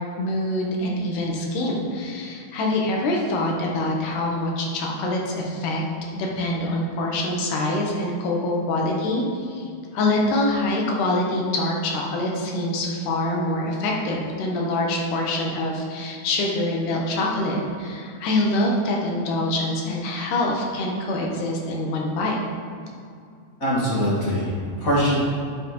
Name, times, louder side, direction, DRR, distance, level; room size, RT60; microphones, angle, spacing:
voice 1, 0.2-5.8 6.2-9.7 9.9-22.4, left 1 dB, 80° left, -1 dB, 2.7 m, -25 dB
voice 2, 23.6-25.2, equal, 30° left, -7 dB, 2.0 m, -22 dB
9.3 x 7.6 x 3.1 m, 2.4 s
omnidirectional pair, 3.6 m